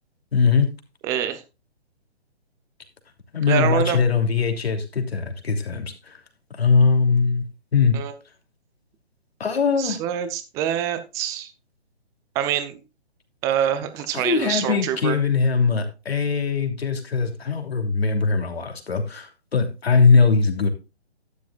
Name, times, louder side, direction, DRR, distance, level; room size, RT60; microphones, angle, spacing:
voice 1, 0.3-0.7 3.3-6.2 6.6-7.4 7.7-8.0 9.4-10.0 13.6-13.7 14.1-20.7, left 5 dB, 70° left, 5 dB, 3.0 m, -21 dB
voice 2, 1.0-1.4 3.5-4.0 7.9-8.1 9.8-11.5 12.3-12.8 13.4-15.2, right 10 dB, 10° right, 11 dB, 0.6 m, -25 dB
12.0 x 10.5 x 2.4 m, 0.28 s
figure-of-eight pair, 140°, 33 cm